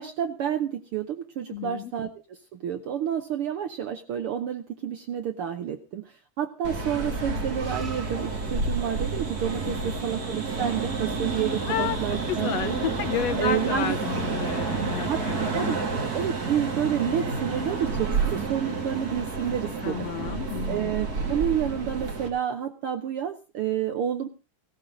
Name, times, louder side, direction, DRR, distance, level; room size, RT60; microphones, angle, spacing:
voice 1, 0.0-2.4 2.6-12.8 13.4-14.0 15.0-15.8 16.1-20.1 20.7-24.3, right 9 dB, 80° right, 7 dB, 1.2 m, -29 dB
voice 2, 1.5-1.9 9.6-9.9 11.7-12.0 12.3-15.9 19.8-20.9, left 10 dB, 70° left, 10 dB, 1.8 m, -31 dB
sound 1, 6.6-22.3, right 4 dB, 35° right, 2.4 m, -30 dB
16.5 x 13.5 x 3.7 m, 0.32 s
omnidirectional pair, 3.5 m